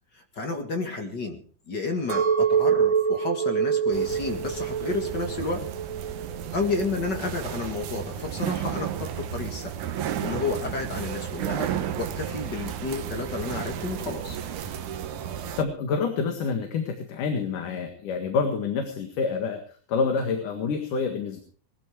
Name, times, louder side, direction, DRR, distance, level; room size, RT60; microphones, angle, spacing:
voice 1, 0.1-1.4 1.7-5.6 6.5-9.7 10.2-14.4, left 3 dB, 40° left, 4 dB, 2.2 m, -31 dB
Chink clink, 2.1-6.4 6.8-7.4, right 7 dB, 45° right, 2.0 m, -25 dB
sound 1, 3.9-15.6, right 9 dB, 70° right, 2.6 m, -33 dB
voice 2, 15.6-19.6 19.9-21.4, left 5 dB, 80° left, 5 dB, 3.3 m, -27 dB
19.5 x 13.5 x 4.8 m, 0.43 s
omnidirectional pair, 3.7 m